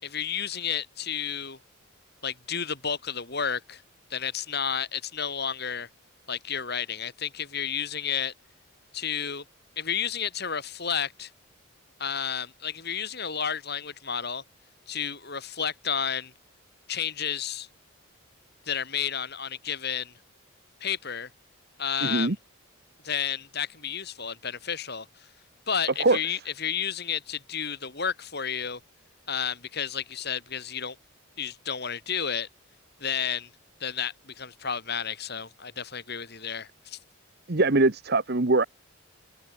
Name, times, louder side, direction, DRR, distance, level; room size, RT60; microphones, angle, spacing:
voice 1, 0.0-1.6 2.2-3.8 4.1-5.9 6.3-8.3 8.9-9.4 9.8-11.3 12.0-14.4 14.9-16.3 16.9-17.7 18.7-20.1 20.8-21.3 21.8-22.3 23.0-25.1 25.7-28.8 29.3-31.0 31.4-32.5 33.0-33.5 33.8-37.0, left 7 dB, 50° left, 3.9 m, -31 dB
voice 2, 22.0-22.4 26.0-26.4 37.5-38.6, right 2 dB, 50° right, 1.1 m, -22 dB
open air
head